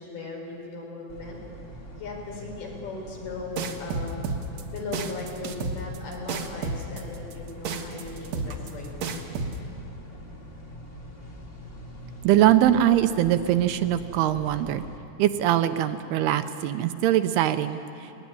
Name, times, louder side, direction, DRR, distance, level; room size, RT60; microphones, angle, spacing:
voice 1, 0.0-1.4 2.0-4.2 4.5-8.9 10.1-10.2, left 3 dB, 65° left, 0 dB, 6.2 m, -38 dB
sound 1, 1.1-15.0, equal, 25° left, 1.4 m, -43 dB
sound 2, 3.6-9.6, right 4 dB, 60° right, 1.9 m, -31 dB
voice 2, 12.2-14.9 15.2-18.2, right 12 dB, 80° right, 10 dB, 2.6 m, -22 dB
21.5 x 19.5 x 10.0 m, 2.7 s
omnidirectional pair, 4.8 m